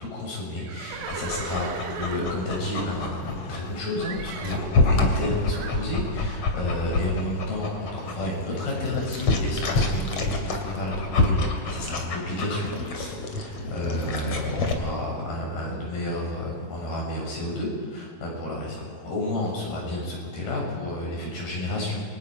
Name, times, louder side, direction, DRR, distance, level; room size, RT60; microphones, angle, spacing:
voice 1, 0.0-22.0, left 1 dB, 60° left, -2 dB, 8.8 m, -31 dB
Livestock farm animals working animals, 0.6-3.7 4.0-4.7 5.5-5.9, right 7 dB, 75° right, 1.6 m, -38 dB
Dog, 0.9-14.7, left 3 dB, 40° left, 3.2 m, -28 dB
29.5 x 24.0 x 5.0 m, 2.1 s
omnidirectional pair, 4.8 m